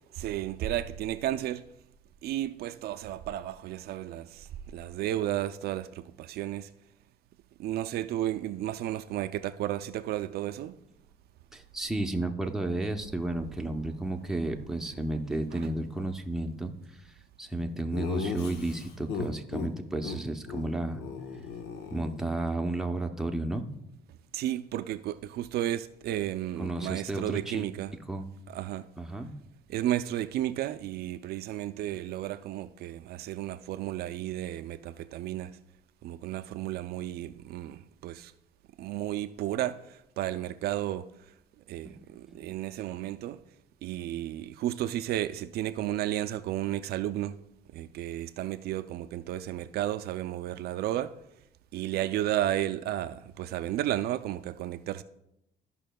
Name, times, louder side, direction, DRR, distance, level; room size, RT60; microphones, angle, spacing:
voice 1, 0.1-1.6 2.2-6.7 7.6-10.8 15.5-15.7 21.7-21.8 24.3-27.9 28.5-28.9 29.7-35.6 36.0-38.3 38.8-41.3 41.7-43.4 43.8-47.4 47.7-51.1 51.7-55.0, right 13 dB, 70° right, 0.4 m, -33 dB
voice 2, 11.5-21.0 21.9-23.6 26.6-27.7 28.1-28.2 29.0-29.3 41.8-42.0 42.3-42.4, right 2 dB, 5° right, 0.7 m, -32 dB
Laughter, 17.9-19.7 20.0-20.2 20.5-20.6 20.9-22.5, left 6 dB, 80° left, 0.9 m, -36 dB
14.0 x 5.6 x 2.2 m
cardioid pair, 110°, 17 cm